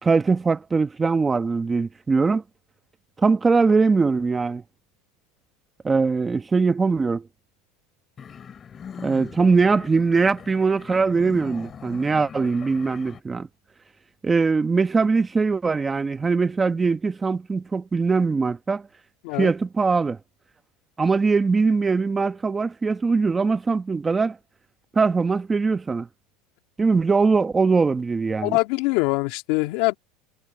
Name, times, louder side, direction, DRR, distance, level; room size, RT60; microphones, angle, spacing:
voice 1, 0.0-2.4 3.2-4.6 5.8-7.2 9.0-13.5 14.2-18.9 19.4-20.2 21.0-24.4 24.9-26.1 26.8-28.6, right 4 dB, 15° right, 1.2 m, -21 dB
sound 1, 8.2-13.2, left 7 dB, 25° left, 3.9 m, -41 dB
voice 2, 28.4-29.9, left 23 dB, 65° left, 2.4 m, -23 dB
supercardioid pair, 145°, 0 cm